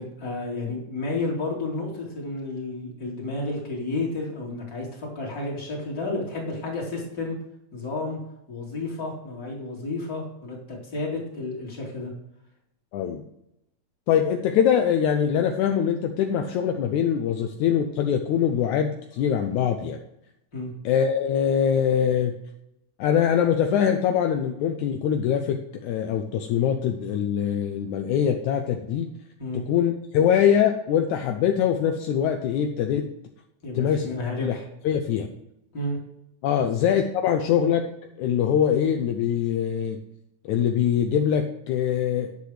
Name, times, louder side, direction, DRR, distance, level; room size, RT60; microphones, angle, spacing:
voice 1, 0.0-7.4 7.7-8.2 8.5-12.1 20.5-20.7 29.4-29.6 33.6-34.6 35.7-36.0 36.6-36.7, left 2 dB, 30° left, -3 dB, 3.0 m, -31 dB
voice 2, 12.9-13.2 14.1-20.0 20.8-22.3 23.0-29.1 29.5-33.0 33.8-34.1 34.4-34.6 34.8-35.3 36.4-37.9 38.2-40.0 40.5-42.3, left 8 dB, 80° left, 5 dB, 2.0 m, -23 dB
9.7 x 6.8 x 4.9 m, 0.83 s
omnidirectional pair, 3.5 m